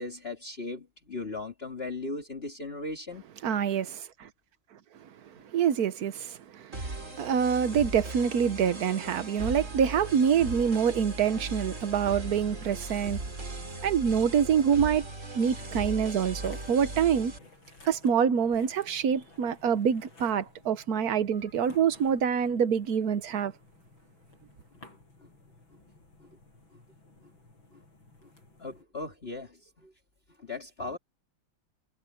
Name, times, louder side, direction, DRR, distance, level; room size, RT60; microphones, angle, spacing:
voice 1, 0.0-3.2 25.2-25.3 26.2-26.3 27.7-27.8 28.2-28.3 28.6-29.9 30.4-31.0, left 2 dB, 30° left, 2.5 m, -38 dB
voice 2, 3.4-4.3 5.0-5.1 5.4-13.3 13.8-15.1 15.3-17.3 17.9-23.5, right 7 dB, 55° right, 1.2 m, -26 dB
sound 1, 6.7-17.4, right 2 dB, 35° right, 4.0 m, -38 dB
sound 2, 12.2-28.8, left 2 dB, 70° left, 7.6 m, -56 dB
omnidirectional pair, 2.3 m